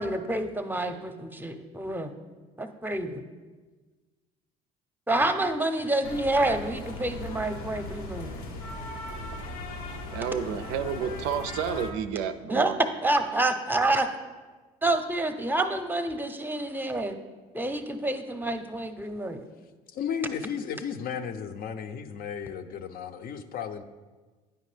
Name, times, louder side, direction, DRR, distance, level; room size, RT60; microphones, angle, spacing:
voice 1, 0.0-2.1 2.6-3.2 5.1-8.3 12.5-12.7 13.0-14.1 14.8-17.2 17.5-19.4, right 2 dB, 10° right, 8 dB, 0.7 m, -28 dB
sound 1, 6.0-11.9, left 2 dB, 90° left, 0.7 m, -38 dB
voice 2, 10.1-12.8, right 8 dB, 75° right, 11 dB, 0.5 m, -30 dB
voice 3, 19.9-23.8, left 7 dB, 55° left, 8 dB, 0.6 m, -34 dB
9.1 x 5.1 x 3.3 m, 1.3 s
hypercardioid pair, 70°, 18 cm